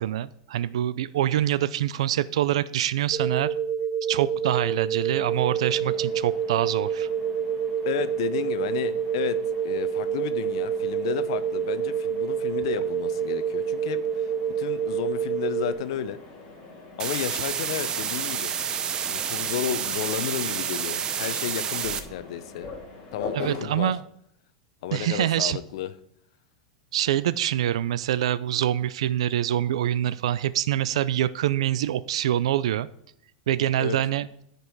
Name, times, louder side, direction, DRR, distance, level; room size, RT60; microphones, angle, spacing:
voice 1, 0.0-3.5 4.1-7.1 23.3-24.0 24.9-25.6 26.9-32.9 33.5-34.3, right 12 dB, 85° right, 16 dB, 0.4 m, -25 dB
sound 1, 3.1-15.7, right 7 dB, 40° right, 2.4 m, -28 dB
Mechanisms, 5.1-23.6, left 3 dB, 30° left, 2.7 m, -44 dB
voice 2, 7.9-9.4 9.6-14.3 14.6-16.2 17.0-18.5 19.1-22.7 23.1-23.9 24.8-25.9 33.8-34.0, left 11 dB, 70° left, 14 dB, 0.8 m, -32 dB
sound 2, 17.0-22.0, right 8 dB, 25° right, 0.7 m, -29 dB
13.5 x 5.4 x 4.6 m, 0.73 s
supercardioid pair, 150°, 3 cm